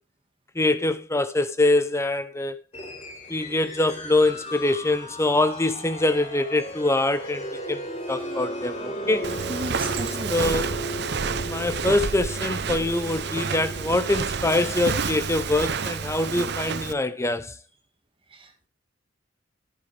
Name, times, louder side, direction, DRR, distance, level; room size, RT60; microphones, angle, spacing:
voice 1, 0.6-2.6 3.3-7.8 8.1-9.3 10.3-10.7 11.5-17.5, left 2 dB, 15° left, 0.8 m, -24 dB
sound 1, 2.7-15.0, equal, 30° left, 4.0 m, -36 dB
Walk footsteps, 9.2-16.9, right 5 dB, 60° right, 0.8 m, -29 dB
voice 2, 9.5-10.6 18.3-18.7, right 1 dB, 25° right, 1.9 m, -35 dB
11.0 x 10.5 x 3.4 m
head